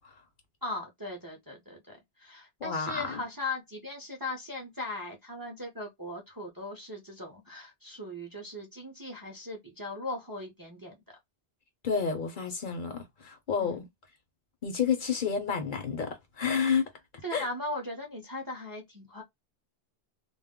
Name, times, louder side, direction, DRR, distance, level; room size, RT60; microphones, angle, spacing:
voice 1, 0.6-11.0 13.6-13.8 17.2-19.2, left 2 dB, 25° right, 0.6 m, -38 dB
voice 2, 2.6-3.2 11.8-13.8 14.6-16.9 17.3-17.5, left 6 dB, 55° left, 0.8 m, -30 dB
2.2 x 2.0 x 3.5 m
omnidirectional pair, 1.0 m